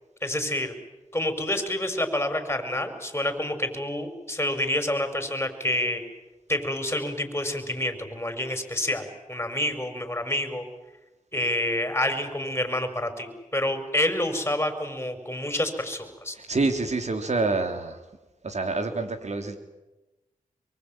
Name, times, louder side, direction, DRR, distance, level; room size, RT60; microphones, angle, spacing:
voice 1, 0.2-0.7 1.1-6.0 6.5-10.6 11.3-16.4, left 1 dB, 15° left, 7 dB, 5.8 m, -28 dB
voice 2, 16.3-18.0 18.4-19.6, right 3 dB, 55° right, 7 dB, 3.4 m, -27 dB
24.0 x 23.5 x 9.2 m, 1.1 s
cardioid pair, 55°, 14 cm